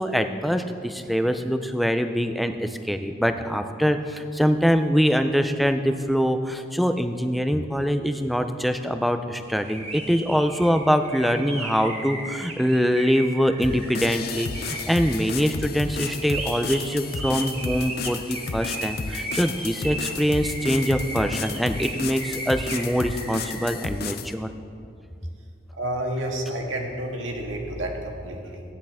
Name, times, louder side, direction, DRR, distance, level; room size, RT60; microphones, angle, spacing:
voice 1, 0.0-24.5, equal, ahead, 7 dB, 0.4 m, -24 dB
sound 1, 9.5-23.8, right 2 dB, 35° right, 1.7 m, -36 dB
sound 2, 13.6-24.3, left 4 dB, 50° left, 0.5 m, -33 dB
voice 2, 25.7-28.6, right 1 dB, 80° right, 0 dB, 1.8 m, -30 dB
16.0 x 10.0 x 3.6 m, 2.5 s
head